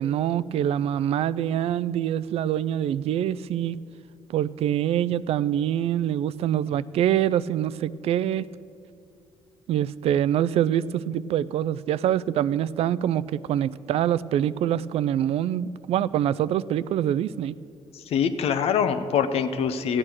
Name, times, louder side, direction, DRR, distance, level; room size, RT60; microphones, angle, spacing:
voice 1, 0.0-3.8 4.3-8.4 9.7-17.5, right 10 dB, 75° right, 17 dB, 0.4 m, -25 dB
voice 2, 17.9-20.0, left 7 dB, 70° left, 10 dB, 0.8 m, -24 dB
15.0 x 8.8 x 6.2 m, 2.5 s
cardioid pair, 95°, 11 cm